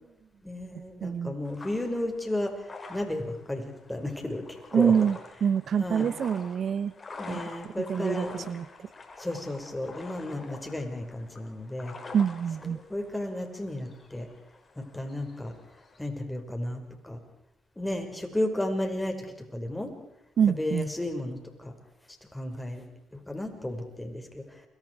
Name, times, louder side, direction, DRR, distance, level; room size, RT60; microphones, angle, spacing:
voice 1, 0.4-4.9 5.8-6.1 7.2-8.5 9.2-12.0 12.6-14.3 14.8-15.5 16.0-17.2 17.8-19.3 19.5-19.9 20.5-21.7 22.3-22.8 23.1-24.6, left 1 dB, 10° left, 4 dB, 5.5 m, -33 dB
voice 2, 1.0-1.4 4.7-6.9 7.3-7.4 7.9-8.7 12.1-12.8 20.4-20.9, right 7 dB, 60° right, 16 dB, 0.8 m, -26 dB
sound 1, 1.4-16.1, left 3 dB, 35° left, 5.3 m, -47 dB
29.0 x 23.0 x 4.8 m, 0.82 s
supercardioid pair, 65°, 0 cm